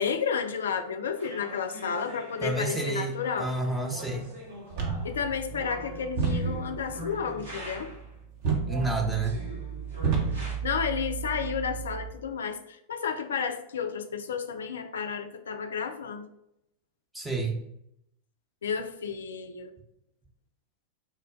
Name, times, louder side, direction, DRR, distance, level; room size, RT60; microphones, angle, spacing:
voice 1, 0.0-3.5 5.0-7.9 10.6-16.3 18.6-19.7, left 6 dB, 65° left, 8 dB, 0.4 m, -31 dB
sound 1, 1.2-8.1 8.6-10.6, equal, 75° right, 1.2 m, -43 dB
voice 2, 2.4-3.1 3.4-4.3 8.6-9.4 17.1-17.6, right 3 dB, 5° right, -1 dB, 0.8 m, -29 dB
sound 2, 4.7-12.1, right 6 dB, 45° right, 0.9 m, -32 dB
4.3 x 2.2 x 3.6 m, 0.78 s
figure-of-eight pair, 90°, 0 cm